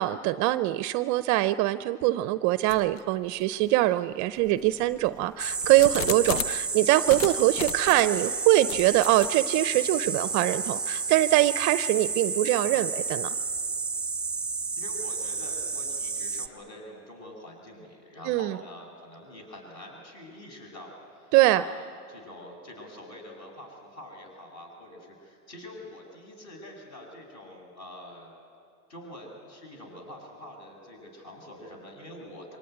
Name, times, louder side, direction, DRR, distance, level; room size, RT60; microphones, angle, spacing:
voice 1, 0.0-13.3 18.3-18.6 21.3-21.6, right 16 dB, 40° right, 14 dB, 0.5 m, -23 dB
sound 1, 2.7-3.0 3.6-3.7 4.4-6.7 7.1-8.2 8.7-9.3, left 11 dB, 60° left, 0.7 m, -36 dB
sound 2, 5.4-16.5, right 4 dB, ahead, 1.1 m, -31 dB
voice 2, 14.8-28.3 28.9-32.6, left 1 dB, 35° left, 1 dB, 7.4 m, -45 dB
24.0 x 18.5 x 9.5 m, 2.4 s
hypercardioid pair, 115°, 46 cm